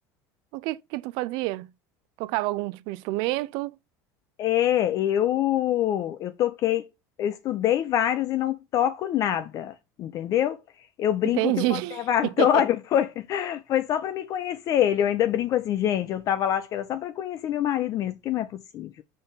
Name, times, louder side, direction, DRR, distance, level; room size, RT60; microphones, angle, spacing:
voice 1, 0.5-1.7 2.2-3.7 11.4-12.6, right 19 dB, 65° right, 0.4 m, -28 dB
voice 2, 4.4-6.9 7.2-10.6 11.0-19.0, left 11 dB, 45° left, 0.5 m, -25 dB
5.4 x 3.4 x 5.5 m
supercardioid pair, 135°, 8 cm